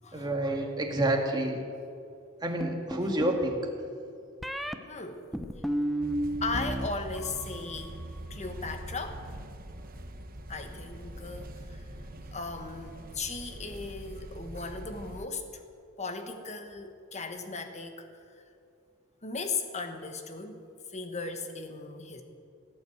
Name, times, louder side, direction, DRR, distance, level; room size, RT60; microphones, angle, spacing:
voice 1, 0.1-1.6 2.4-3.7, right 1 dB, 20° right, 1 dB, 1.9 m, -28 dB
sound 1, 2.6-3.4 4.4-4.8 5.3-6.9 7.2-7.7, right 1 dB, ahead, 0.6 m, -32 dB
voice 2, 4.9-5.2 6.4-8.0 8.3-9.2 10.5-11.8 12.3-15.6 16.0-18.1 19.2-20.6 20.9-22.2, left 4 dB, 35° left, 7 dB, 1.3 m, -37 dB
sound 2, 6.0-15.3, right 1 dB, 45° right, 1.0 m, -43 dB
17.0 x 9.3 x 8.0 m, 2.5 s
head